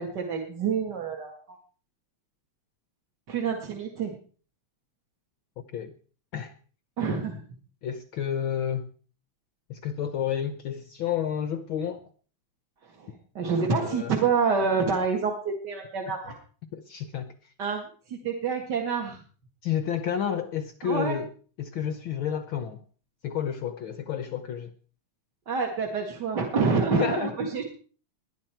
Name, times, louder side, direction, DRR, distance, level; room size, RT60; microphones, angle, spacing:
voice 1, 0.0-1.6 3.3-4.1 7.0-7.4 13.0-13.1 13.4-16.3 17.6-19.2 20.8-21.2 25.5-27.6, right 5 dB, 40° right, 1 dB, 2.2 m, -27 dB
voice 2, 5.6-5.9 6.3-6.5 7.8-8.9 9.7-12.0 13.7-14.1 16.7-17.5 19.6-21.3 21.6-22.8 23.2-24.7 26.9-27.4, left 9 dB, 70° left, 10 dB, 1.2 m, -30 dB
20.5 x 11.0 x 4.5 m, 0.42 s
omnidirectional pair, 3.3 m